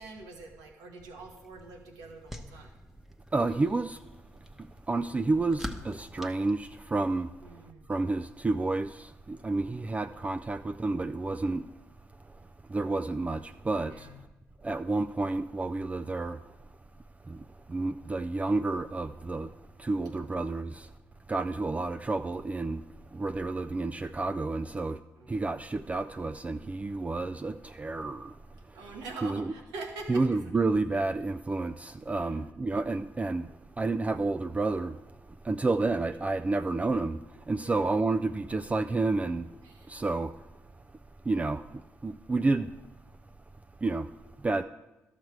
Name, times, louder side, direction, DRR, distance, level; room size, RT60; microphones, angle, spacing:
voice 1, 0.0-2.7 7.4-7.8 9.5-9.9 13.9-14.2 20.2-20.4 25.2-25.4 28.7-30.5 32.2-32.4 37.6-37.8 39.6-40.0, right 3 dB, 90° right, 1.3 m, -45 dB
sound 1, 1.2-7.3, left 1 dB, ahead, 0.9 m, -46 dB
voice 2, 3.3-4.0 4.9-7.3 7.9-11.6 12.7-14.1 14.6-16.4 17.3-17.4 17.7-19.5 19.8-20.9 21.3-22.8 23.1-25.0 25.3-28.3 29.2-29.4 30.1-33.5 33.8-35.0 35.4-37.2 37.5-39.5 39.9-40.3 41.3-41.6 42.0-42.7 43.8-44.1 44.4-44.6, right 3 dB, 20° right, 0.3 m, -30 dB
12.0 x 6.6 x 4.6 m
supercardioid pair, 55°, 6 cm